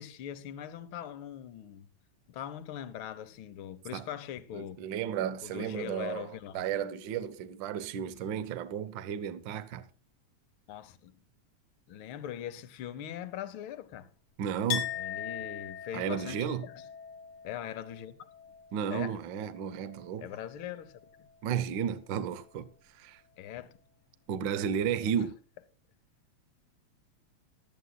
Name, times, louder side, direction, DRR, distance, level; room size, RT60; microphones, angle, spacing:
voice 1, 0.0-1.9 2.3-4.8 5.4-6.7 10.7-11.1 11.9-14.1 15.0-16.8 17.4-18.2 18.9-19.2 20.2-21.0 23.4-23.8, left 10 dB, 65° left, 1.3 m, -41 dB
voice 2, 4.5-9.9 14.4-14.9 15.9-16.7 18.7-20.2 21.4-22.7 22.9-23.2 24.3-25.4, right 8 dB, 85° right, 1.0 m, -33 dB
Chink clink, 14.7-20.2 20.5-21.4, left 10 dB, 85° left, 3.2 m, -41 dB
18.0 x 12.5 x 2.3 m
omnidirectional pair, 3.4 m